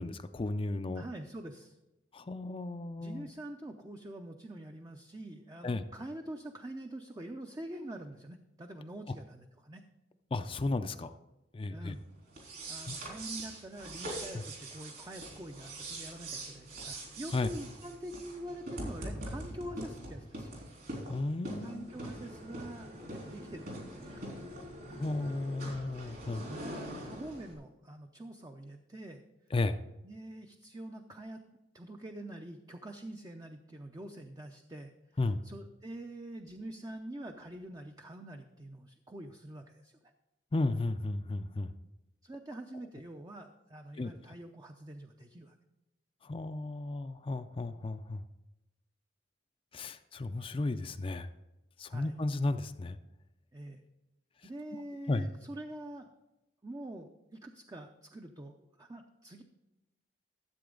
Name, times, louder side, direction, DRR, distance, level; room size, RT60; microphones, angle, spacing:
voice 1, 0.0-1.0 2.1-3.3 5.6-5.8 10.3-11.1 11.5-12.0 12.9-13.0 17.3-17.5 21.1-21.9 25.0-26.4 29.5-29.8 35.2-35.4 40.5-41.7 44.0-44.1 46.3-48.2 49.7-51.3 51.8-53.0 55.1-55.3, left 2 dB, 30° left, 9 dB, 0.4 m, -34 dB
voice 2, 0.9-1.8 3.0-9.8 11.7-12.0 12.7-20.5 21.6-24.0 26.3-29.2 30.0-31.4 31.7-34.9 35.4-40.0 42.2-45.5 51.9-52.2 53.5-53.8 54.4-56.1 56.6-59.4, right 1 dB, 20° right, 4 dB, 0.6 m, -45 dB
sound 1, 12.3-27.5, right 1 dB, 60° right, 3.5 m, -43 dB
13.5 x 7.8 x 3.8 m, 0.98 s
head